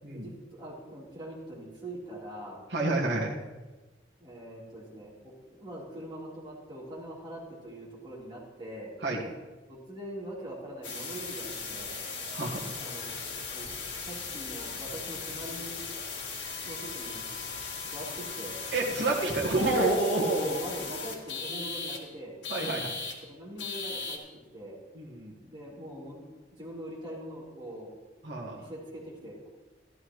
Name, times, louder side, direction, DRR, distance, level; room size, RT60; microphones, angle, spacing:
voice 1, 0.1-2.7 4.2-9.0 9.7-12.0 12.8-13.2 13.5-13.7 14.0-15.8 16.6-17.3 17.8-18.6 20.1-22.4 23.2-24.2 24.5-24.8 25.4-26.2 26.6-27.9 28.5-29.5, right 1 dB, 25° right, -7 dB, 3.9 m, -43 dB
voice 2, 2.7-3.3 9.0-9.2 12.3-12.7 18.7-20.6 22.5-23.0 24.9-25.3 28.2-28.6, right 2 dB, 70° right, -4 dB, 1.8 m, -28 dB
sound 1, 10.8-22.0 22.4-23.1 23.6-24.2, left 4 dB, 80° left, 2.0 m, -38 dB
13.5 x 12.5 x 3.2 m, 1.2 s
head